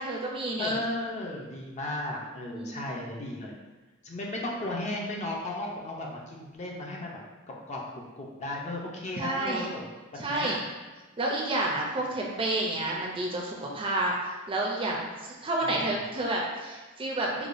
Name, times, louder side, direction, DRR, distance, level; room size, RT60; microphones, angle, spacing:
voice 1, 0.0-0.8 2.5-2.8 9.2-9.7 10.2-10.6 11.2-17.5, right 2 dB, 25° right, -2 dB, 0.4 m, -30 dB
voice 2, 0.6-3.5 4.0-7.2 7.7-7.8 8.2-9.9 10.2-10.6 15.6-15.9, left 1 dB, 30° left, -2 dB, 0.5 m, -35 dB
4.8 x 2.2 x 2.5 m, 1.3 s
head